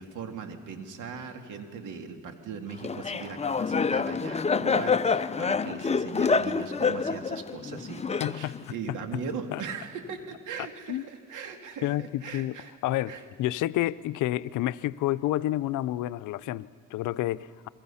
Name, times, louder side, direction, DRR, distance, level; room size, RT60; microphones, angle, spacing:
voice 1, 0.0-12.7 13.1-13.2, right 5 dB, 80° right, 6 dB, 2.3 m, -39 dB
Laughter, 2.8-8.7, left 5 dB, 20° left, 0.7 m, -27 dB
voice 2, 8.2-9.0 9.5-9.6 10.9-11.0 11.8-12.6 12.8-13.1 13.4-17.7, left 15 dB, 85° left, 15 dB, 0.6 m, -29 dB
27.5 x 22.0 x 5.7 m, 2.2 s
cardioid pair, 90°, 30 cm